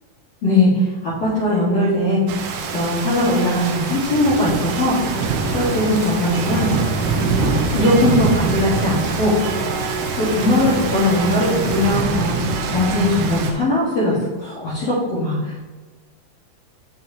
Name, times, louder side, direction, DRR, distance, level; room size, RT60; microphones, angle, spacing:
voice 1, 0.4-2.2 2.7-5.0 5.5-6.7 7.0-9.4 10.2-12.4 12.7-15.6, left 1 dB, 55° left, -9 dB, 2.2 m, -20 dB
Rain, 2.3-13.5, right 5 dB, 80° right, 2.0 m, -24 dB
sound 1, 2.4-12.0, right 2 dB, 55° right, 0.7 m, -36 dB
sound 2, 4.6-13.5, left 3 dB, 85° left, 2.8 m, -36 dB
7.7 x 7.1 x 2.7 m, 1.3 s
omnidirectional pair, 4.2 m